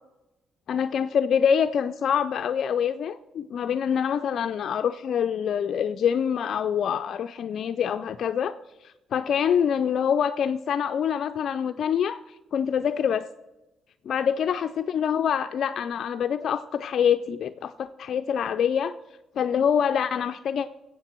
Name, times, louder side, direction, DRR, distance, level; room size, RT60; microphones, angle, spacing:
voice 1, 0.7-12.2 12.5-13.3 14.1-18.9 19.4-20.7, left 8 dB, 65° left, 10 dB, 0.3 m, -25 dB
17.0 x 8.0 x 4.4 m, 1.0 s
cardioid pair, 90°, 0 cm